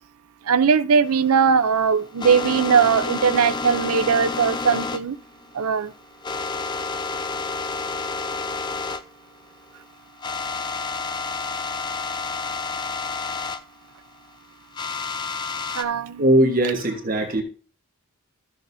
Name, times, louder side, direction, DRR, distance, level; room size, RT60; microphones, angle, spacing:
voice 1, 0.5-5.2 5.5-5.9 15.8-16.2, right 6 dB, 85° right, 0.5 m, -19 dB
sound 1, 1.1-9.0 9.3-9.4 9.8-9.9 10.2-13.6 14.7-15.8, left 4 dB, 20° left, 0.4 m, -30 dB
voice 2, 16.2-17.4, right 1 dB, 40° right, 1.3 m, -19 dB
14.0 x 6.4 x 2.7 m
head